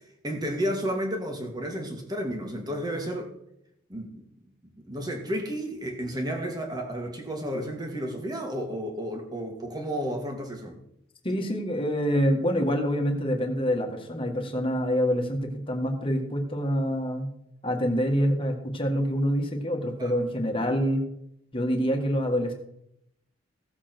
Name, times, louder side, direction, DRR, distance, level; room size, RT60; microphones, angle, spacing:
voice 1, 0.2-3.3 3.9-4.2 4.8-10.8 20.0-20.1, equal, 20° right, 2 dB, 2.1 m, -32 dB
voice 2, 11.2-17.3 17.6-21.0 21.5-22.5, equal, 25° left, 2 dB, 1.9 m, -26 dB
16.5 x 7.5 x 4.5 m, 0.76 s
head